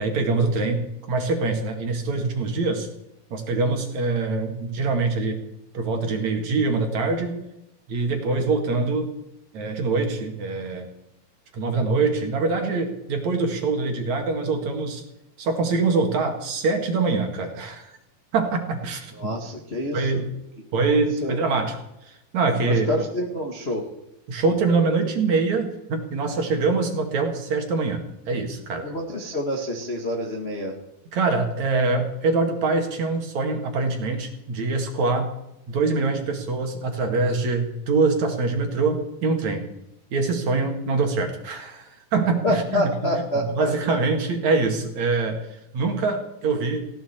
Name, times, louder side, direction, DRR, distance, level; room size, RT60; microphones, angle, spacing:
voice 1, 0.0-2.9 3.3-5.4 5.7-7.4 7.9-9.1 9.5-10.9 11.5-15.0 15.4-17.9 18.3-19.3 19.9-20.3 20.7-22.9 24.3-28.9 31.1-35.3 35.7-39.7 40.1-42.8 43.5-46.9, right 3 dB, 55° right, 3 dB, 3.2 m, -24 dB
voice 2, 19.2-20.2 21.2-21.4 22.6-23.8 28.8-30.8 42.4-44.0, left 1 dB, 30° left, 0 dB, 1.1 m, -27 dB
19.0 x 17.0 x 4.5 m, 0.87 s
omnidirectional pair, 4.2 m